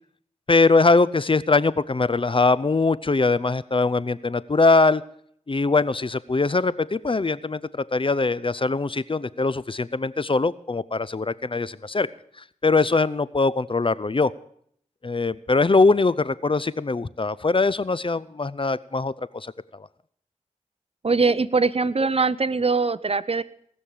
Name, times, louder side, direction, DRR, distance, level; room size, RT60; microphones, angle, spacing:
voice 1, 0.5-5.0 5.5-12.1 12.6-14.3 15.0-19.9, left 3 dB, 40° left, 18 dB, 0.6 m, -22 dB
voice 2, 21.0-23.4, right 4 dB, 45° right, 17 dB, 0.7 m, -22 dB
18.5 x 6.5 x 8.7 m, 0.65 s
cardioid pair, 40°, 14 cm